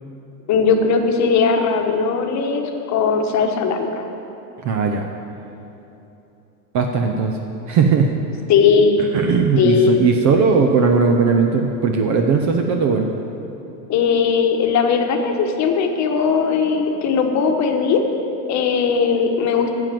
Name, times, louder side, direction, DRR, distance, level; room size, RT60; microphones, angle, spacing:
voice 1, 0.5-4.0 8.5-9.0 9.6-10.0 13.9-18.0 18.5-19.7, left 5 dB, 35° left, 4 dB, 1.2 m, -18 dB
voice 2, 4.6-5.1 6.7-7.3 7.7-8.1 9.1-13.1, right 5 dB, 35° right, 4 dB, 0.7 m, -18 dB
9.6 x 7.7 x 7.6 m, 3.0 s
supercardioid pair, 120°, 50 cm